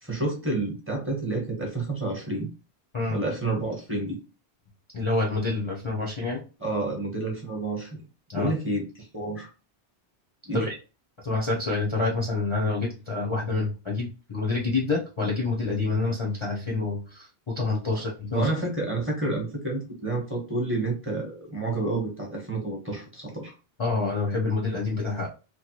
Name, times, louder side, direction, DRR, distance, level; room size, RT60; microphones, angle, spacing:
voice 1, 0.0-2.5 3.1-4.2 6.6-8.0 8.3-9.5 10.4-10.7 18.3-23.5, right 2 dB, 10° right, -1 dB, 1.0 m, -29 dB
voice 2, 4.9-6.4 8.3-8.5 10.5-10.7 11.2-18.5 23.8-25.3, left 3 dB, 35° left, -2 dB, 0.6 m, -27 dB
3.0 x 2.2 x 2.9 m, 0.32 s
omnidirectional pair, 1.1 m